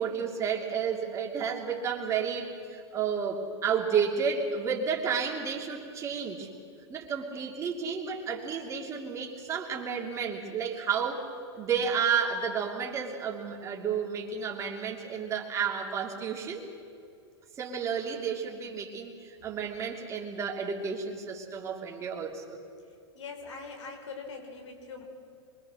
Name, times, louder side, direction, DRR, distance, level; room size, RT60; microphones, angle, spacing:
voice 1, 0.0-6.5 6.9-11.3 11.6-16.7 17.6-22.6, right 6 dB, 20° right, 0 dB, 2.9 m, -31 dB
voice 2, 23.1-25.0, left 4 dB, 90° left, 3 dB, 5.0 m, -42 dB
26.0 x 24.0 x 6.4 m, 2.5 s
supercardioid pair, 155°, 15 cm